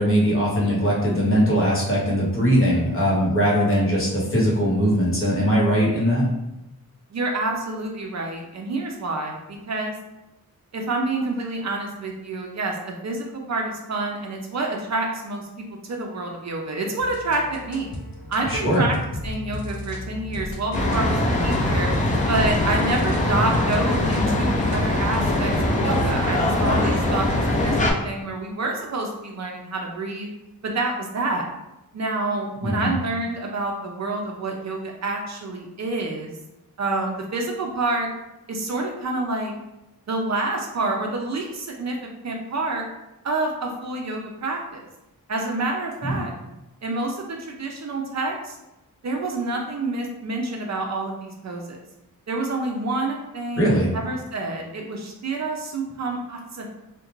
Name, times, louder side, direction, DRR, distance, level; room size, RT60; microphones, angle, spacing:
voice 1, 0.0-6.3 18.5-18.8 32.6-32.9 46.0-46.2 53.6-54.0, equal, 35° left, -5 dB, 0.9 m, -20 dB
voice 2, 7.1-9.9 10.7-15.5 15.9-17.9 18.3-19.0 19.2-21.9 22.3-30.3 30.6-31.5 31.9-36.3 36.8-38.1 38.5-39.5 40.1-42.8 43.2-44.9 45.3-46.3 46.8-48.6 49.0-51.8 52.3-56.7, right 2 dB, 50° right, 1 dB, 0.4 m, -28 dB
sound 1, 17.0-26.0, left 1 dB, 75° left, 0.6 m, -35 dB
sound 2, 20.7-27.9, left 1 dB, 20° left, 0.4 m, -22 dB
2.4 x 2.1 x 3.0 m, 0.94 s
wide cardioid pair, 100°, 35 cm